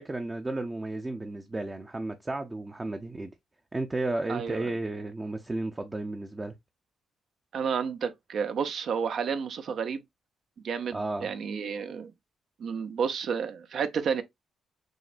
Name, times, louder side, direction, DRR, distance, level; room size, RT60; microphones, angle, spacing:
voice 1, 0.0-3.3 3.7-6.5 10.9-11.3, right 2 dB, 25° right, 0.5 m, -33 dB
voice 2, 4.3-4.7 7.5-10.0 10.6-12.1 12.6-14.2, right 6 dB, 65° right, 0.6 m, -31 dB
6.2 x 2.1 x 2.4 m
cardioid pair, 75°, 0 cm